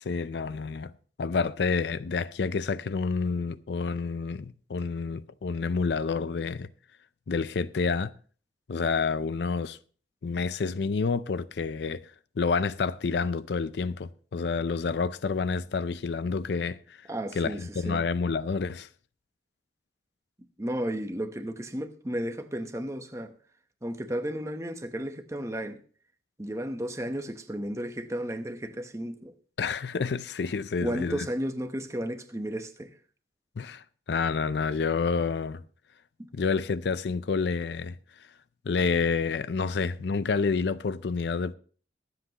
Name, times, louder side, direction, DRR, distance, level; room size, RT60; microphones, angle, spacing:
voice 1, 0.0-0.9 1.2-6.7 7.3-8.1 8.7-9.8 10.2-12.0 12.4-17.0 17.3-18.9 29.6-31.3 33.6-35.6 36.3-38.0 38.7-41.5, left 5 dB, 65° left, 0.4 m, -29 dB
voice 2, 17.1-18.0 20.6-23.3 23.8-25.8 26.4-29.3 30.8-32.9 36.2-36.3, equal, 15° right, 0.8 m, -33 dB
23.0 x 7.8 x 2.9 m
head